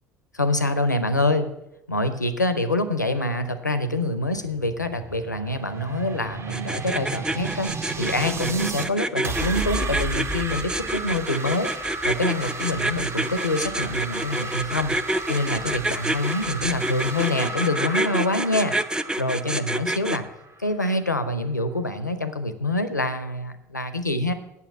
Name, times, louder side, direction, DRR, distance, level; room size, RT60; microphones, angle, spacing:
voice 1, 0.3-1.5 1.9-7.7 8.0-11.7 12.0-14.9 15.3-18.7 19.2-20.3 20.6-24.3, left 2 dB, 90° left, 11 dB, 0.7 m, -25 dB
sound 1, 4.4-8.9 9.2-20.8, right 3 dB, 30° right, 1.2 m, -34 dB
sound 2, 6.5-20.2, right 1 dB, 10° right, 0.6 m, -27 dB
8.4 x 7.0 x 8.2 m, 0.91 s
figure-of-eight pair, 60°, 9 cm